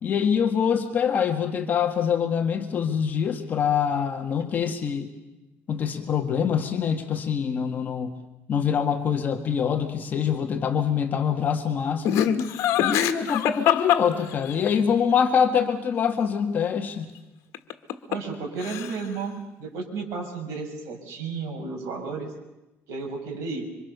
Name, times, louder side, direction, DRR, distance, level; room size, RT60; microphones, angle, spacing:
voice 1, 0.0-5.1 5.7-8.2 8.5-12.3 12.8-17.1, left 7 dB, 35° left, 4 dB, 1.9 m, -25 dB
Laughter, 12.0-14.7 17.5-18.3 18.6-19.2, left 10 dB, 75° left, 1.8 m, -24 dB
voice 2, 18.1-22.3 22.9-23.7, right 4 dB, 80° right, 1 dB, 6.4 m, -33 dB
27.0 x 25.0 x 6.8 m, 1.0 s
cardioid pair, 160°, 5 cm